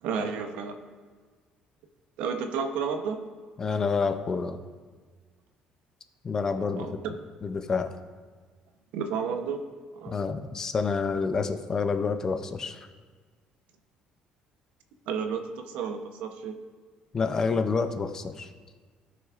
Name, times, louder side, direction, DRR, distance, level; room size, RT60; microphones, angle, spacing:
voice 1, 0.0-0.8 2.2-3.2 6.8-6.9 8.9-9.7 9.9-10.2 15.1-16.5, right 6 dB, 80° right, 6 dB, 0.8 m, -31 dB
voice 2, 3.6-4.6 6.2-7.0 7.4-7.9 10.1-12.9 17.1-18.5, left 5 dB, 25° left, 8 dB, 0.4 m, -28 dB
16.5 x 6.3 x 2.5 m, 1.5 s
cardioid pair, 165°, 2 cm